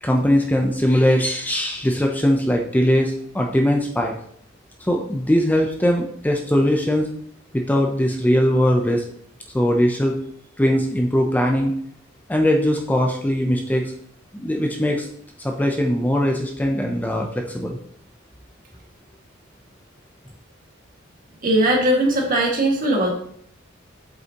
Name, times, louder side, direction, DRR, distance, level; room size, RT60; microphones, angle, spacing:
voice 1, 0.0-4.1 4.9-7.1 7.5-9.0 9.5-10.2 10.6-11.7 12.3-13.8 14.3-15.1 15.4-17.8, equal, 10° left, 1 dB, 0.6 m, -20 dB
voice 2, 21.4-23.1, right 1 dB, 45° right, -1 dB, 1.8 m, -19 dB
7.7 x 5.5 x 2.9 m, 0.65 s
head